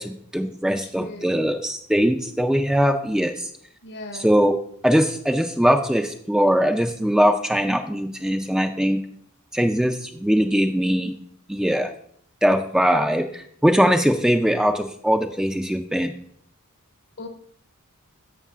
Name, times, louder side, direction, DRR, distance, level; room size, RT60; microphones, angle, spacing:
voice 1, 0.0-3.5 4.1-4.5 4.8-9.0 9.5-11.1 11.5-11.9 12.4-16.1, equal, 5° right, 5 dB, 0.4 m, -21 dB
voice 2, 1.0-1.4 3.8-4.3 17.2-17.3, left 1 dB, 55° left, 6 dB, 0.9 m, -37 dB
11.0 x 7.5 x 2.4 m, 0.64 s
head